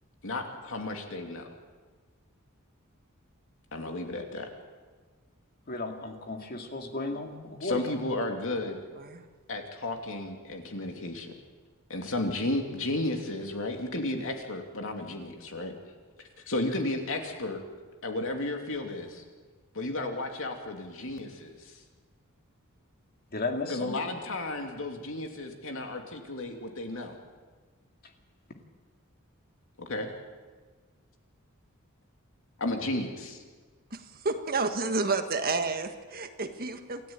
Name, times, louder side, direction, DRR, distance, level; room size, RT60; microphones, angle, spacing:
voice 1, 0.2-1.5 3.7-4.5 7.6-8.8 9.5-11.3 11.9-15.7 16.5-17.6 18.0-19.2 19.7-21.8 23.7-27.1 29.8-30.1 32.6-33.4, left 2 dB, 65° left, 3 dB, 2.9 m, -33 dB
voice 2, 5.7-7.8 23.3-23.9, left 3 dB, 45° left, 4 dB, 2.4 m, -34 dB
voice 3, 33.9-37.0, right 3 dB, 45° right, 7 dB, 1.6 m, -30 dB
28.0 x 13.0 x 9.0 m, 1.4 s
head